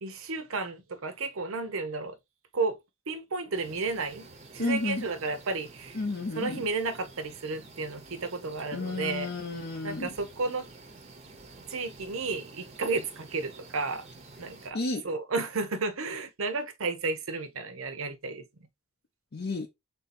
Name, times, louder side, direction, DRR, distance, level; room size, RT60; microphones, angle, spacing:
voice 1, 0.0-2.2 2.5-2.8 3.1-4.3 4.5-6.0 6.4-9.3 9.8-10.7 11.7-14.0 14.4-14.8 15.0-18.4, right 3 dB, 75° right, 0.8 m, -32 dB
sound 1, 3.5-14.7, right 3 dB, 30° right, 0.7 m, -50 dB
voice 2, 4.6-5.1 5.9-6.6 8.7-10.1 14.7-15.0 19.3-19.7, left 2 dB, 50° left, 0.5 m, -32 dB
3.7 x 2.7 x 4.1 m
head